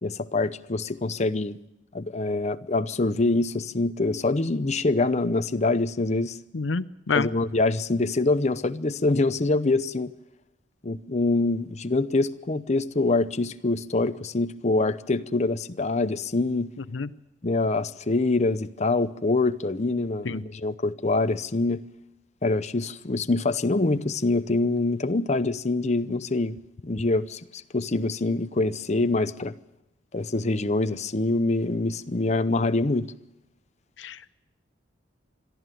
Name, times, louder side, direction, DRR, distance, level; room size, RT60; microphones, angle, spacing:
voice 1, 0.0-1.6 1.9-6.4 7.1-10.1 10.8-16.7 17.4-21.8 22.4-26.6 26.8-29.5 30.1-33.1, left 2 dB, 35° left, 11 dB, 0.7 m, -25 dB
voice 2, 6.5-7.3 16.9-17.1 20.2-20.4 34.0-34.3, left 4 dB, 75° left, 15 dB, 0.6 m, -28 dB
22.5 x 13.5 x 9.1 m, 0.90 s
head